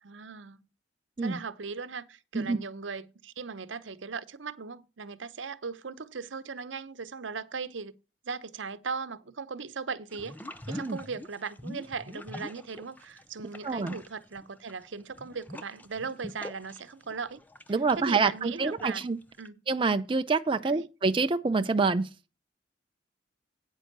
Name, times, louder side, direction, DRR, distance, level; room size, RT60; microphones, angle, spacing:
voice 1, 0.0-0.6 1.2-7.9 8.2-10.4 10.7-17.4 18.0-19.0 19.4-19.6 20.6-20.9, right 5 dB, 90° right, 0.8 m, -38 dB
sound 1, 10.1-13.2 13.5-19.5, left 1 dB, 10° left, 0.7 m, -44 dB
voice 2, 10.7-11.0 13.6-13.9 17.7-19.2 19.7-22.1, right 4 dB, 30° right, 0.5 m, -27 dB
9.1 x 5.4 x 6.6 m
head